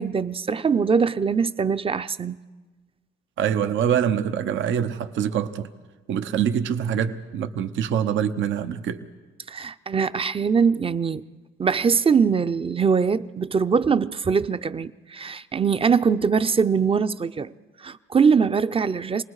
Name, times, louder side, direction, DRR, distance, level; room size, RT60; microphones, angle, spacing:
voice 1, 0.0-2.4 9.5-11.2 11.6-17.5 17.8-19.2, right 6 dB, 30° right, 0.6 m, -22 dB
voice 2, 3.4-5.7 6.1-9.0, right 8 dB, 75° right, 0.9 m, -24 dB
27.5 x 19.5 x 4.8 m
cardioid pair, 90°, 20 cm